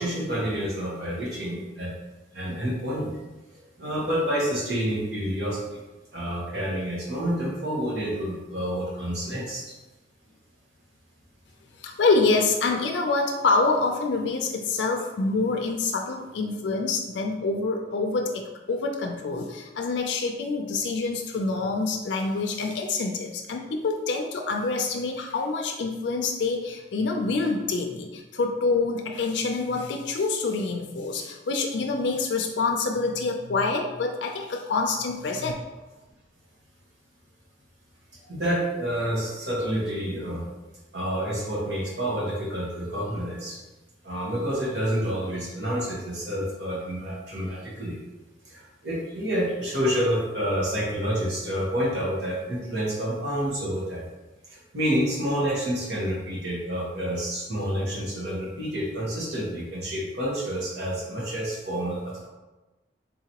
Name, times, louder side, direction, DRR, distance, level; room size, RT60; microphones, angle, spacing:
voice 1, 0.0-1.9 2.3-3.2 3.8-5.8 6.1-9.7 38.1-40.5 40.9-43.6 44.0-48.0 48.4-54.0 54.5-62.3, equal, 70° right, -5 dB, 1.2 m, -28 dB
voice 2, 11.8-18.4 18.7-35.5, left 3 dB, 80° left, 2 dB, 0.4 m, -26 dB
4.0 x 2.8 x 2.9 m, 1.1 s
head